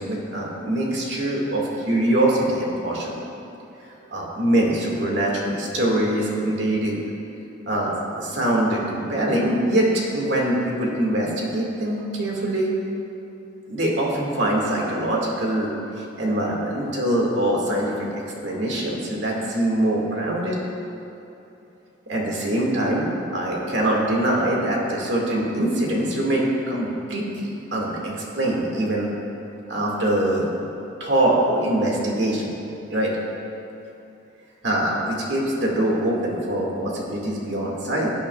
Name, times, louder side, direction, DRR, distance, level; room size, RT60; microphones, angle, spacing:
voice 1, 0.0-3.2 4.1-7.0 7.7-12.7 13.7-15.7 16.0-18.1 18.4-20.6 22.1-23.1 23.3-29.1 29.7-30.5 31.0-32.5 32.9-33.1 34.6-38.1, right 1 dB, 70° right, -2 dB, 1.9 m, -23 dB
16.5 x 8.6 x 2.4 m, 2.9 s
head